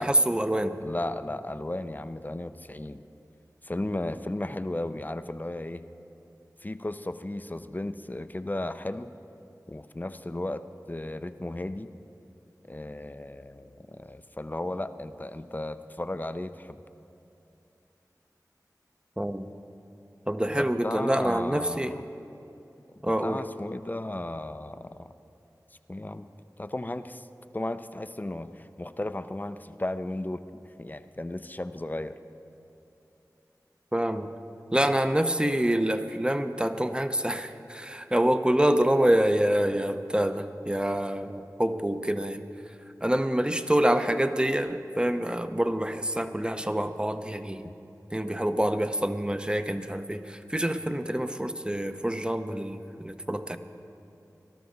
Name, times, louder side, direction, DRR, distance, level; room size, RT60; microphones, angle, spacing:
voice 1, 0.0-0.8 19.2-19.5 20.3-22.0 23.0-23.4 33.9-34.3 34.7-42.8 43.0-47.7 48.1-53.6, right 1 dB, 15° right, 9 dB, 0.7 m, -26 dB
voice 2, 0.8-3.0 3.6-5.8 6.6-9.1 9.7-11.9 12.7-16.8 20.6-21.9 23.1-25.1 25.9-26.3 26.6-27.3 27.5-30.4 30.8-32.1 47.6-47.7, left 1 dB, 25° left, 11 dB, 0.5 m, -35 dB
18.5 x 12.5 x 3.9 m, 2.9 s
wide cardioid pair, 40°, 7 cm